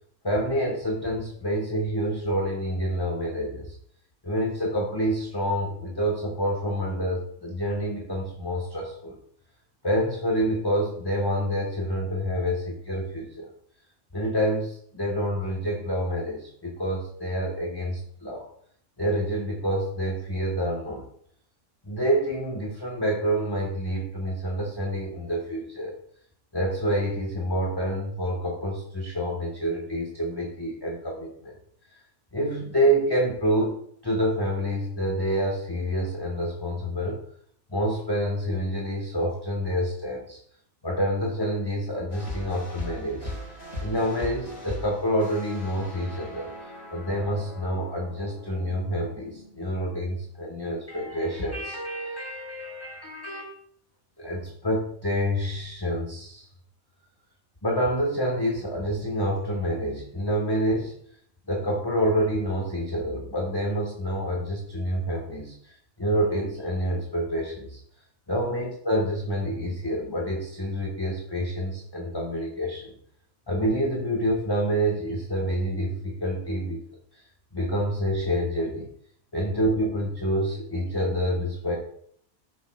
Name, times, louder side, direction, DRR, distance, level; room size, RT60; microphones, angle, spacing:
voice 1, 0.2-3.7 4.2-9.2 9.8-13.5 14.1-18.5 19.0-21.0 21.8-25.9 26.5-31.5 32.3-33.8 34.0-37.2 37.7-40.4 40.8-43.3 43.8-46.5 46.9-53.5 54.2-56.5 57.6-60.9 61.5-67.8 68.3-72.9 73.5-76.8 77.1-77.2 77.5-78.9 79.3-81.8, equal, 20° left, -1 dB, 1.3 m, -27 dB
sound 1, 42.1-50.3, left 1 dB, 50° left, 4.3 m, -40 dB
14.5 x 7.4 x 2.3 m, 0.65 s
omnidirectional pair, 1.4 m